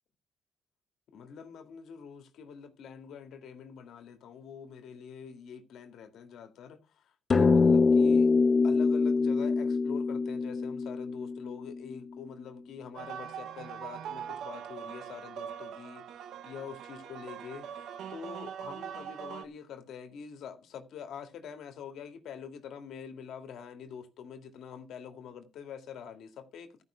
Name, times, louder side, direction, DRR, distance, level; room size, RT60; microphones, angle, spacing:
voice 1, 1.1-8.3 8.6-26.8, left 7 dB, 75° left, 2.0 m, -45 dB
sound 1, 7.3-12.0, left 4 dB, 40° left, 0.7 m, -24 dB
sound 2, 12.9-19.4, right 8 dB, 75° right, 0.9 m, -42 dB
13.5 x 5.5 x 5.7 m
cardioid pair, 90°, 0 cm